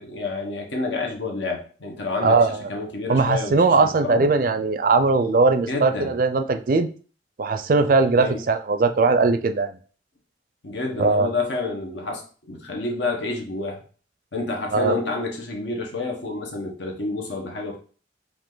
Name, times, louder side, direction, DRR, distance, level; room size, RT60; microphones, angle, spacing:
voice 1, 0.0-4.3 5.7-6.1 8.2-8.4 10.6-12.2 12.5-13.8 14.3-17.8, left 3 dB, 85° left, 1 dB, 1.1 m, -29 dB
voice 2, 2.2-2.6 3.1-6.9 7.4-9.8 11.0-11.3 14.7-15.0, right 3 dB, 50° right, 9 dB, 0.4 m, -19 dB
4.9 x 2.6 x 3.8 m, 0.40 s
head